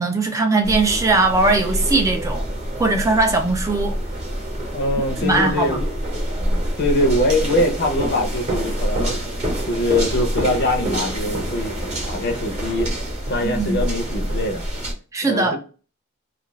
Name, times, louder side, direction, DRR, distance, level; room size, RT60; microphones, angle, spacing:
voice 1, 0.0-2.5 2.8-4.0 5.2-5.8 13.4-13.8 15.1-15.6, right 3 dB, 15° right, 0.3 m, -19 dB
sound 1, 0.6-14.9, equal, 35° right, 0.8 m, -26 dB
voice 2, 4.7-5.9 6.8-9.2 9.7-11.8 12.1-12.9 13.2-14.7 15.2-15.6, left 1 dB, 50° left, 0.6 m, -22 dB
2.4 x 2.3 x 3.0 m
head